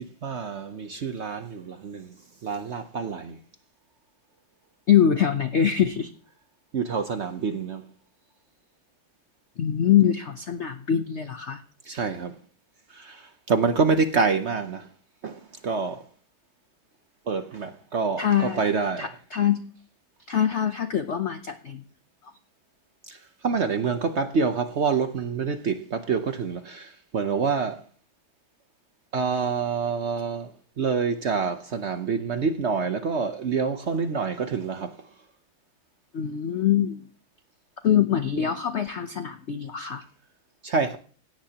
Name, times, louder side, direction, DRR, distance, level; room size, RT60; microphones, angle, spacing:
voice 1, 0.0-2.1 2.4-3.4 6.7-7.8 11.8-12.3 12.9-14.9 15.2-16.1 17.3-19.1 23.1-27.8 29.1-35.1 40.6-41.0, right 5 dB, 70° right, 0.6 m, -27 dB
voice 2, 4.9-6.1 9.6-11.6 18.2-18.6 19.0-19.6 20.3-21.8 36.1-37.0 37.8-40.0, left 9 dB, 85° left, 0.6 m, -23 dB
17.0 x 16.5 x 2.9 m
omnidirectional pair, 2.2 m